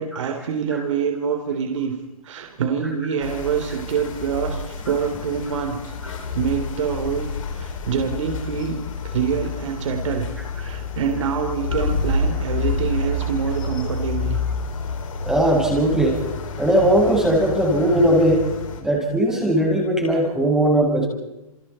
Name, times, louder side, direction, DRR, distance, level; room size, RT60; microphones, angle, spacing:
voice 1, 0.0-1.9 2.2-5.9 6.3-7.3 7.5-10.3 10.5-14.4, right 7 dB, 60° right, 5 dB, 3.5 m, -26 dB
sound 1, 3.2-18.8, left 3 dB, 65° left, 5.8 m, -29 dB
voice 2, 15.2-16.2 16.6-18.5 18.8-21.0, right 1 dB, 5° right, -3 dB, 6.8 m, -18 dB
29.5 x 29.0 x 4.4 m, 0.93 s
hypercardioid pair, 150°, 18 cm